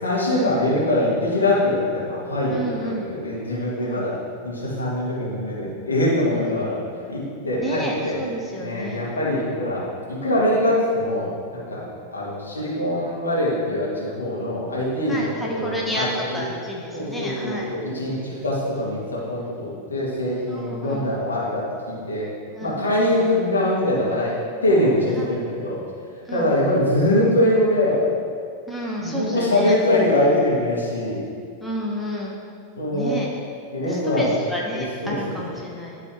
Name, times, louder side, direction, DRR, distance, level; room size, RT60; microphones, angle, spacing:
voice 1, 0.0-4.2 4.4-6.8 7.1-8.1 8.5-11.8 12.1-16.5 16.9-22.3 22.6-25.8 26.3-28.1 29.0-31.2 32.8-33.1 33.7-34.3 34.7-35.4, left 1 dB, 75° left, -6 dB, 2.2 m, -23 dB
voice 2, 2.5-3.1 3.8-4.0 6.6-6.7 7.6-9.0 15.1-17.7 20.5-21.0 22.5-22.8 25.1-25.3 26.2-26.5 28.7-29.7 31.6-32.4 32.9-33.3 33.9-36.0, equal, 5° left, -3 dB, 1.2 m, -30 dB
12.0 x 4.0 x 4.7 m, 2.2 s
figure-of-eight pair, 90°, 0 cm